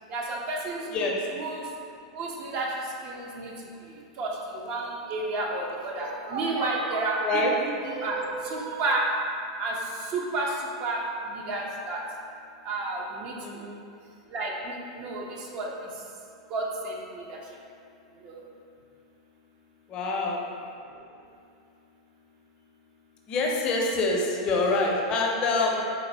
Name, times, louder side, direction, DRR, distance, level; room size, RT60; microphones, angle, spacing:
voice 1, 0.1-1.1 1.3-1.6 2.1-2.7 3.0-3.5 4.2-9.0 9.6-9.7 10.1-10.5 10.8-11.0 11.3-12.0 12.6-13.3 14.3-15.2 15.5-15.7 16.5-17.4 18.2-18.4, right 2 dB, 45° right, -1 dB, 0.6 m, -31 dB
voice 2, 0.9-1.3 7.2-7.5 13.4-13.8 19.9-20.5 23.3-25.8, left 2 dB, 40° left, -1 dB, 0.5 m, -26 dB
4.0 x 2.6 x 2.6 m, 2.5 s
hypercardioid pair, 100°, 3 cm